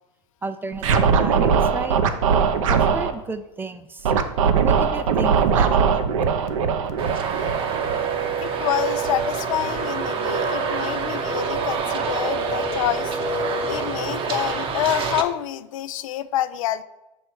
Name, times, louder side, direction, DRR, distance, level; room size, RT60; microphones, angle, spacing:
voice 1, 0.4-2.0 2.7-4.1 4.6-6.1, right 4 dB, 10° right, 11 dB, 0.4 m, -32 dB
Scratching (performance technique), 0.8-3.1 4.0-8.4, right 6 dB, 70° right, 0.7 m, -20 dB
Traffic noise roadway noise, 7.0-15.2, right 5 dB, 30° right, 0.8 m, -26 dB
voice 2, 8.4-16.8, left 12 dB, 70° left, 13 dB, 0.4 m, -27 dB
6.3 x 4.7 x 4.4 m, 0.98 s
hypercardioid pair, 105°, 17 cm